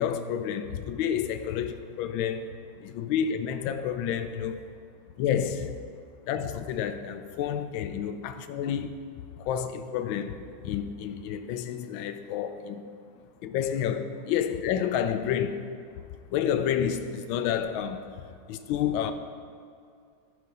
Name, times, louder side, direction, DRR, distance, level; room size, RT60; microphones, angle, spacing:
voice 1, 0.0-4.6 5.2-5.8 6.3-9.0 9.4-12.8 13.4-15.7 16.3-19.1, left 8 dB, 85° left, 1.4 m, -30 dB
13.0 x 4.7 x 5.3 m
omnidirectional pair, 2.1 m